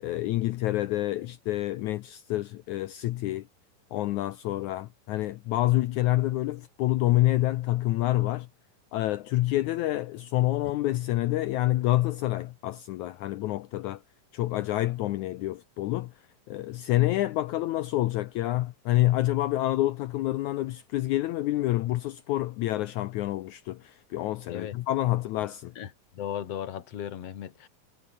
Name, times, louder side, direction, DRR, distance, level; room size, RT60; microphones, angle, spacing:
voice 1, 0.0-3.5 3.9-8.5 8.9-14.0 14.3-16.1 16.5-25.7, left 16 dB, 90° left, 1.7 m, -27 dB
voice 2, 26.1-27.7, left 9 dB, 50° left, 2.3 m, -36 dB
omnidirectional pair, 4.2 m